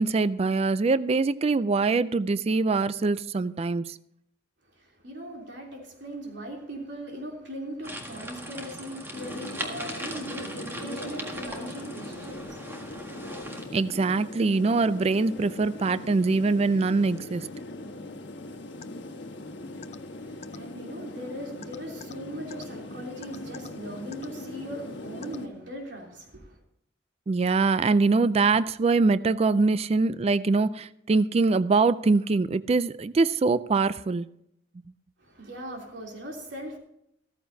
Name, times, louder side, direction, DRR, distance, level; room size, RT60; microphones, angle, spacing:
voice 1, 0.0-4.0 13.7-17.5 27.3-34.3, right 3 dB, 35° right, 0.4 m, -23 dB
voice 2, 4.6-13.0 19.4-19.6 20.2-26.6 35.2-36.8, right 1 dB, 75° right, 3.2 m, -39 dB
sound 1, 7.8-13.6, right 1 dB, 15° right, 1.7 m, -39 dB
sound 2, 9.1-25.5, left 2 dB, 75° left, 1.3 m, -41 dB
sound 3, 18.8-18.9 19.8-20.0 20.4-20.6 21.6-22.1 22.5-22.6 23.2-23.7 24.1-24.3 25.2-25.4, left 7 dB, 40° left, 0.5 m, -43 dB
14.5 x 14.0 x 2.7 m
head